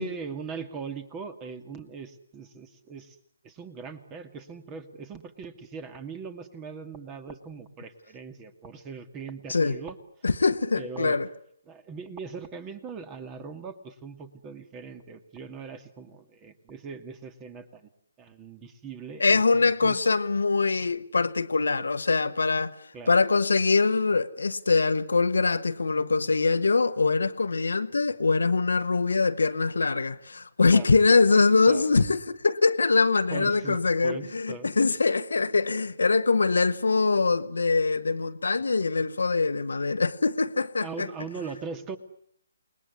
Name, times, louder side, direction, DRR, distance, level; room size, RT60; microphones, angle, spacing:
voice 1, 0.0-3.2 3.4-10.0 10.8-11.2 11.7-17.9 18.2-20.0 22.9-23.2 30.7-30.9 31.3-31.9 33.3-34.7 40.8-42.0, right 5 dB, 15° right, 2.2 m, -40 dB
voice 2, 10.2-11.3 19.2-22.7 23.1-41.1, left 4 dB, 65° left, 1.4 m, -23 dB
29.0 x 20.5 x 9.6 m
figure-of-eight pair, 140°, 0 cm